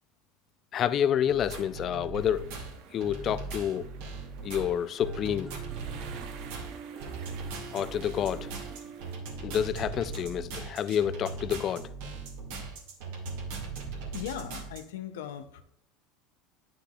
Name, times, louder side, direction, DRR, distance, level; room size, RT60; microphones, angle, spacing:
voice 1, 0.7-2.5 2.9-3.9 4.4-5.5 7.7-8.5 9.4-11.9, left 9 dB, 40° left, 0.4 m, -29 dB
sound 1, 1.3-14.8, right 4 dB, 80° right, 2.1 m, -39 dB
sound 2, 2.2-9.2, right 7 dB, 65° right, 0.9 m, -52 dB
sound 3, 5.0-10.9, right 7 dB, 25° right, 0.7 m, -47 dB
voice 2, 14.1-15.6, left 10 dB, 85° left, 0.7 m, -38 dB
9.9 x 5.8 x 2.4 m
supercardioid pair, 120°, 0 cm